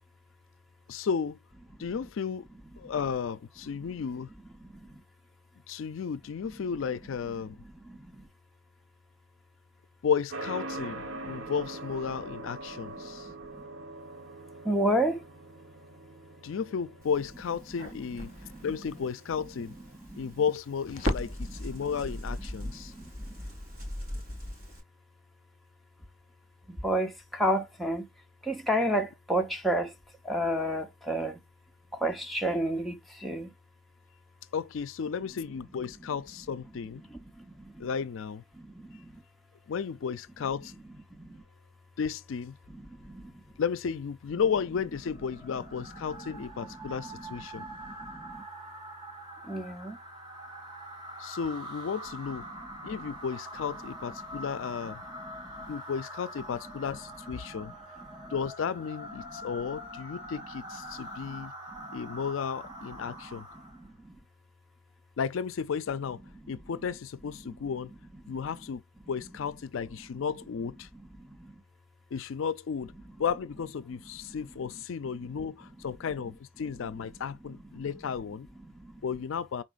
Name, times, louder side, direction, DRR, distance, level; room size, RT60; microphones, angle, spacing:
voice 1, 0.9-1.4 1.8-2.5 2.8-4.3 5.7-7.6 10.0-13.3 16.4-18.3 18.6-19.7 20.1-22.9 34.5-37.1 37.8-38.4 39.7-40.7 42.0-42.6 43.6-47.7 51.2-52.4 52.8-55.0 55.7-57.7 58.3-61.5 61.9-63.5 65.2-66.2 66.5-67.9 68.3-68.8 69.1-70.9 72.1-72.9 73.2-78.5 79.0-79.6, left 6 dB, 70° left, 0.4 m, -33 dB
voice 2, 4.6-5.0 7.4-8.3 11.2-11.5 12.7-13.6 14.6-15.2 17.7-17.8 18.3-18.7 19.7-19.8 20.1-20.3 21.1-22.0 22.6-23.5 26.7-28.1 28.4-29.9 30.2-31.4 31.9-33.5 36.9-37.9 38.5-39.2 41.2-41.4 42.7-43.4 45.8-45.9 46.2-46.3 46.6-47.2 47.5-48.4 49.4-50.0 52.8-53.1 54.4-54.5 55.2-55.7 57.4-57.8 58.1-58.3 59.2-59.4 60.9-61.4 61.8-62.2 63.0-63.2 63.6-64.2 66.4-66.6 68.2-68.4 71.2-71.6 74.3-74.4 75.0-75.3 77.7-78.1 78.6-79.1, right 1 dB, ahead, 0.7 m, -33 dB
sound 1, 10.3-20.0, right 2 dB, 65° right, 0.9 m, -43 dB
Crackle, 17.0-24.8, left 1 dB, 40° right, 3.3 m, -38 dB
sound 2, 45.0-63.9, equal, 20° right, 1.2 m, -44 dB
4.4 x 4.1 x 2.3 m
head